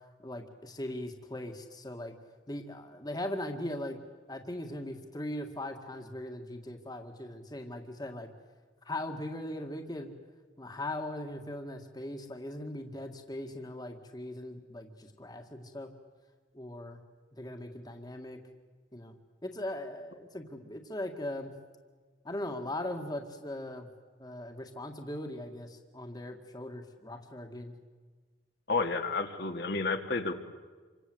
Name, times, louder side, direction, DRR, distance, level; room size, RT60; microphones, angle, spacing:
voice 1, 0.2-2.1 2.5-4.0 4.3-8.3 8.9-10.1 10.6-15.9 16.5-17.0 17.3-18.4 18.9-19.2 19.4-21.5 22.2-23.9 24.2-27.7, left 1 dB, 20° left, 5 dB, 2.0 m, -39 dB
voice 2, 28.7-30.3, left 3 dB, 60° left, 5 dB, 2.2 m, -31 dB
28.5 x 25.5 x 8.0 m, 1.4 s
head